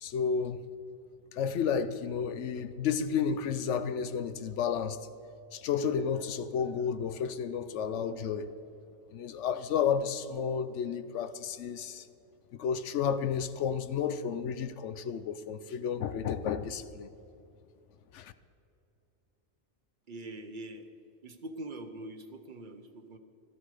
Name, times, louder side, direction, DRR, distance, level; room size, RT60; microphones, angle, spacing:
voice 1, 0.0-0.6 1.3-5.1 5.5-8.5 9.1-12.1 12.5-17.1 18.1-18.3, left 7 dB, 85° left, 1.0 m, -32 dB
voice 2, 20.1-20.9 21.2-23.2, right 1 dB, 45° right, 0.9 m, -43 dB
15.5 x 13.5 x 4.9 m
omnidirectional pair, 1.2 m